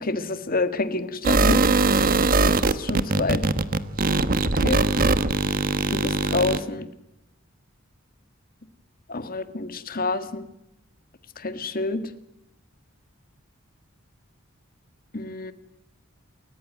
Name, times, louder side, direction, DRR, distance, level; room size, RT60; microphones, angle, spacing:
voice 1, 0.0-1.6 2.7-3.5 4.6-4.8 5.9-6.9 9.1-10.4 11.4-12.1 15.1-15.5, left 3 dB, 45° left, 11 dB, 1.9 m, -27 dB
sound 1, 1.2-6.6, right 3 dB, 45° right, 1.3 m, -21 dB
28.5 x 14.5 x 9.3 m, 0.86 s
head